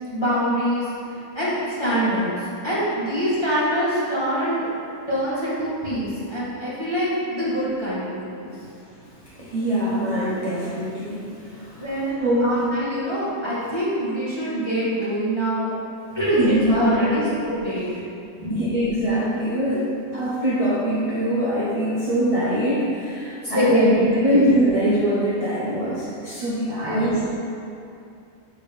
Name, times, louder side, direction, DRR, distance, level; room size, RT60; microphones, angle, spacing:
voice 1, 0.1-0.9 1.3-2.3 2.6-4.6 5.1-8.5 11.8-15.7 16.2-17.9 18.4-18.5 23.5-24.5 26.8-27.2, equal, 20° left, -10 dB, 1.6 m, -24 dB
voice 2, 9.2-11.8 12.2-12.5 16.4-17.2 18.5-19.9 20.1-27.2, equal, 25° right, -10 dB, 1.0 m, -23 dB
6.9 x 3.7 x 5.2 m, 2.5 s
omnidirectional pair, 1.6 m